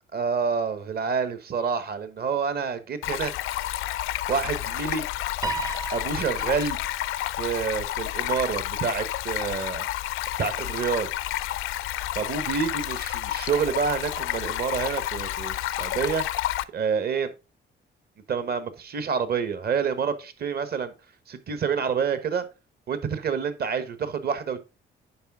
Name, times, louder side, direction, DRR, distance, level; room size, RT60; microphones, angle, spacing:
voice 1, 0.1-3.3 4.3-5.0 5.9-6.8 7.4-9.8 10.4-11.1 12.1-16.2 16.7-17.3 18.3-20.9 21.3-22.4 22.9-24.6, right 6 dB, 50° right, 1.3 m, -28 dB
Stream, 3.0-16.6, left 14 dB, 85° left, 0.5 m, -30 dB
Piano, 5.4-7.9, right 5 dB, 20° right, 0.5 m, -36 dB
10.0 x 4.8 x 3.6 m
cardioid pair, 90°, 20 cm